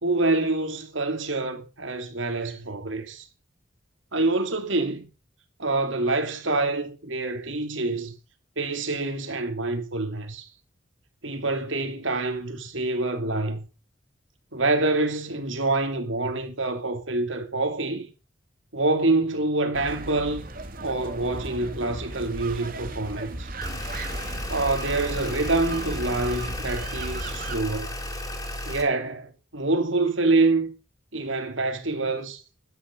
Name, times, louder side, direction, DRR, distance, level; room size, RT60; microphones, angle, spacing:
voice 1, 0.0-3.3 4.1-5.1 5.6-8.1 8.6-10.5 11.2-13.7 14.5-18.1 18.7-20.4 20.8-23.5 24.5-27.9 28.6-30.7 31.1-32.4, right 2 dB, 75° right, 3.0 m, -26 dB
sound 1, 19.7-27.6, right 2 dB, 45° right, 2.1 m, -36 dB
sound 2, 23.6-28.8, left 1 dB, 20° left, 4.0 m, -34 dB
12.0 x 11.0 x 5.2 m
head